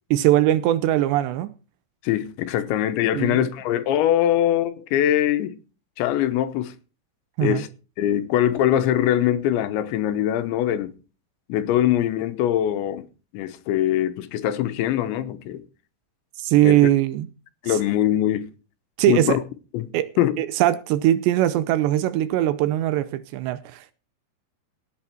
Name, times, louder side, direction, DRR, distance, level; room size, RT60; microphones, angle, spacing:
voice 1, 0.1-1.5 3.1-3.5 7.4-7.6 16.4-17.3 17.7-17.8 19.0-19.4 19.9-20.1 20.4-23.9, right 13 dB, 80° right, 2.7 m, -21 dB
voice 2, 2.0-5.6 6.0-6.7 7.4-7.7 8.0-10.9 11.5-13.1 13.3-15.6 16.6-16.9 17.6-18.5 19.0-19.4 19.7-19.9 20.2-20.3, left 11 dB, 80° left, 3.2 m, -22 dB
17.5 x 8.7 x 4.4 m
omnidirectional pair, 5.4 m